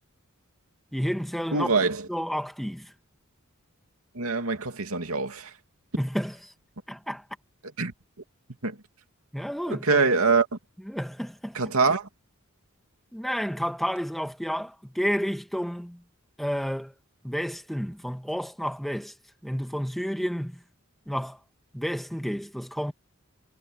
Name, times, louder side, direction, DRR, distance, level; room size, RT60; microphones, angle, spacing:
voice 1, 0.9-1.7 2.1-2.9 6.0-6.3 6.9-7.2 9.3-10.0 10.9-11.6 13.1-16.0 16.4-16.9 17.2-19.1 19.4-20.6 21.1-21.4 21.7-22.9, equal, ahead, 2.0 m, -30 dB
voice 2, 1.5-2.1 4.1-5.5 7.8-7.9 8.6-8.8 9.7-10.5 11.5-12.1, right 4 dB, 85° right, 2.7 m, -24 dB
head